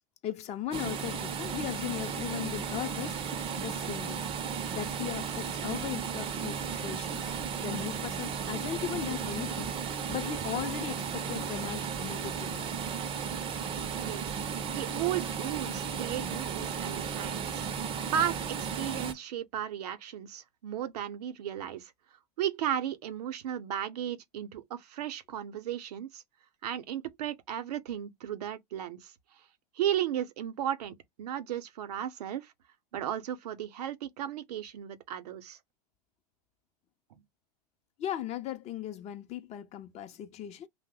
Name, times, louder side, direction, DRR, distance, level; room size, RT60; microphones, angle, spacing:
voice 1, 0.2-3.2 3.5-4.2 4.7-7.4 7.6-9.7 10.1-12.7 38.0-40.7, left 11 dB, 30° left, 0.5 m, -37 dB
sound 1, 0.7-19.1, right 7 dB, 25° right, 0.5 m, -35 dB
voice 2, 14.0-14.3 14.7-17.7 18.1-21.9 22.4-26.2 26.6-29.1 29.7-32.5 32.9-35.6, right 10 dB, 70° right, 0.6 m, -35 dB
2.6 x 2.1 x 3.7 m
hypercardioid pair, 100°, 21 cm